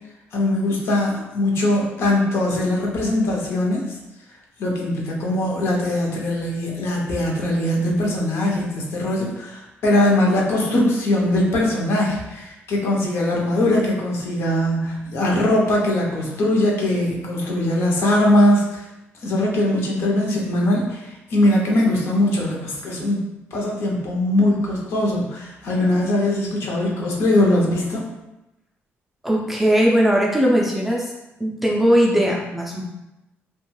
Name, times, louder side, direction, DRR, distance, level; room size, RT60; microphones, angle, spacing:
voice 1, 0.3-4.0 4.6-18.8 19.2-23.2 23.5-28.0, left 1 dB, 60° left, -2 dB, 0.7 m, -21 dB
voice 2, 29.2-31.1 31.4-32.8, equal, 5° right, -3 dB, 0.3 m, -19 dB
2.8 x 2.2 x 3.0 m, 0.94 s
cardioid pair, 165°, 5 cm